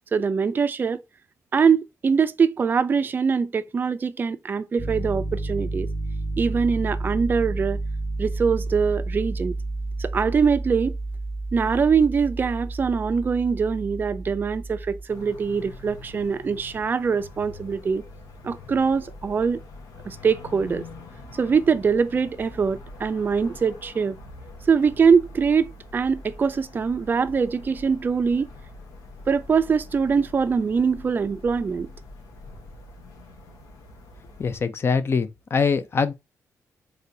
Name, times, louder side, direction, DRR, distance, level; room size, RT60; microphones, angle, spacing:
voice 1, 0.1-1.0 1.5-5.9 6.4-7.8 8.2-9.6 10.0-10.9 11.5-18.0 18.4-19.6 20.1-20.8 21.4-24.2 24.7-28.5 29.3-31.9, right 5 dB, 35° right, 0.3 m, -23 dB
Piano, 4.8-15.0, right 2 dB, 25° left, 1.2 m, -30 dB
sound 1, 15.1-34.6, left 2 dB, 85° left, 0.9 m, -44 dB
voice 2, 34.4-36.1, left 5 dB, 40° left, 0.5 m, -23 dB
3.7 x 3.3 x 2.6 m
cardioid pair, 95°, 6 cm